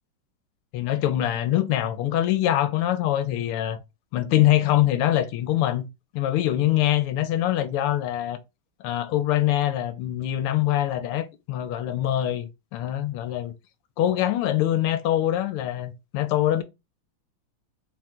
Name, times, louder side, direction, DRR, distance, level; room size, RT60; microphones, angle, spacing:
voice 1, 0.7-3.8 4.1-5.9 6.1-8.4 8.8-13.5 14.0-16.6, left 13 dB, 85° left, 1.5 m, -24 dB
4.1 x 2.5 x 4.2 m
omnidirectional pair, 2.4 m